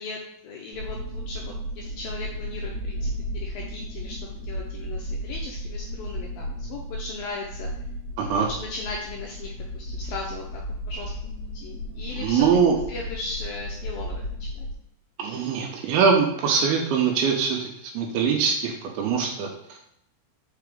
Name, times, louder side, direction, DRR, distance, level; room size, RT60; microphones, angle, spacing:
voice 1, 0.0-4.2 4.4-7.7 8.3-10.6 10.9-12.5 12.9-14.7, left 3 dB, 80° left, -1 dB, 2.1 m, -37 dB
sound 1, 0.7-14.7, equal, 60° right, 2.4 m, -34 dB
voice 2, 8.2-8.5 12.2-12.8 15.2-19.8, right 6 dB, 80° right, 2 dB, 2.4 m, -23 dB
5.9 x 4.7 x 3.5 m, 0.76 s
omnidirectional pair, 4.9 m